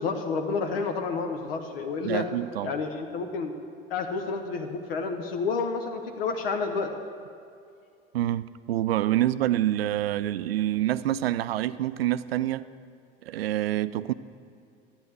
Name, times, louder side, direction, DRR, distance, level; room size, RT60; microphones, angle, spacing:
voice 1, 0.0-2.3 2.6-3.5 3.9-6.9, left 4 dB, 65° left, 1.0 m, -30 dB
voice 2, 2.0-2.7 8.1-12.7 13.2-14.1, right 13 dB, 70° right, 0.5 m, -27 dB
11.5 x 9.0 x 7.7 m
figure-of-eight pair, 65°, 31 cm